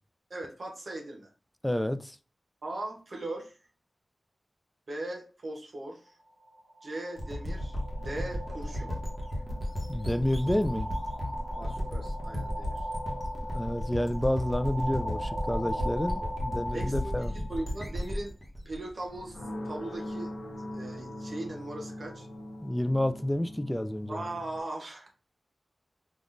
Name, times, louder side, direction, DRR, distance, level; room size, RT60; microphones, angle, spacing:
voice 1, 0.3-1.3 2.6-3.6 4.9-6.2 6.8-8.9 11.5-12.9 16.2-16.3 16.7-18.3 18.6-19.4 19.6-20.3 20.7-22.3 24.1-25.1, right 2 dB, 60° right, 0.9 m, -39 dB
voice 2, 1.6-2.2 9.9-10.9 13.5-17.3 22.6-24.2, left 1 dB, 10° left, 0.3 m, -29 dB
sound 1, 6.4-18.1, equal, 50° left, 0.9 m, -39 dB
sound 2, 7.2-19.8, equal, 25° left, 1.0 m, -35 dB
sound 3, 19.1-24.6, left 1 dB, 80° left, 0.8 m, -41 dB
3.5 x 2.4 x 2.5 m
wide cardioid pair, 75°, 0 cm